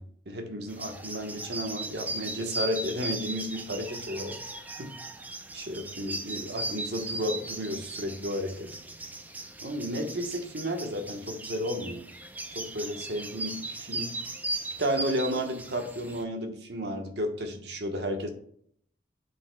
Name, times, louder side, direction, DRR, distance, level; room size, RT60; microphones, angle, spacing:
voice 1, 0.0-4.4 4.8-4.9 5.5-8.7 9.6-12.0 12.5-14.1 14.8-18.3, equal, 70° right, 4 dB, 1.2 m, -33 dB
sound 1, 0.7-16.2, right 1 dB, 10° right, 0.4 m, -38 dB
9.4 x 5.5 x 2.2 m, 0.63 s
head